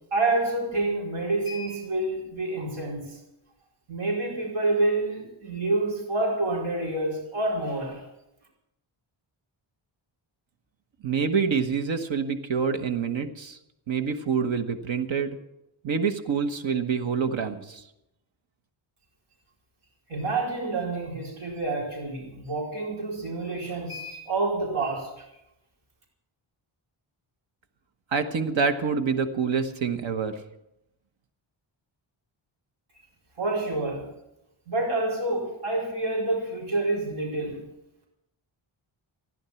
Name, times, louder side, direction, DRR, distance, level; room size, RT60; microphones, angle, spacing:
voice 1, 0.1-3.2 3.9-8.0 20.1-25.2 33.4-34.1 34.7-37.7, right 2 dB, 80° right, -2 dB, 4.7 m, -28 dB
voice 2, 11.0-13.6 13.9-15.4 15.8-17.8 28.1-30.4, right 6 dB, 65° right, 8 dB, 1.5 m, -26 dB
15.5 x 11.0 x 7.1 m, 0.86 s
wide cardioid pair, 175°, 49 cm